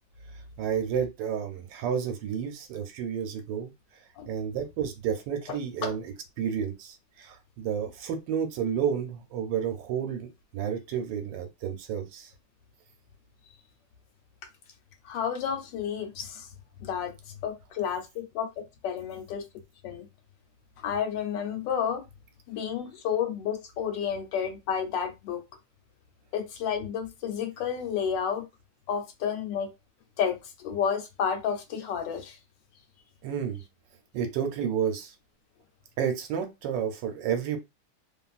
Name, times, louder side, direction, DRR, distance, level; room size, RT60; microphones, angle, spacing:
voice 1, 0.6-3.7 4.3-12.3 33.2-33.6 34.1-35.1 36.0-37.6, right 8 dB, 80° right, 1.3 m, -31 dB
voice 2, 15.0-16.5 16.8-17.1 17.4-18.5 18.8-19.4 19.8-20.1 20.8-22.0 22.5-25.4 26.3-28.5 28.9-29.7 30.2-32.4, left 7 dB, 80° left, 1.4 m, -31 dB
2.8 x 2.5 x 2.4 m
omnidirectional pair, 1.9 m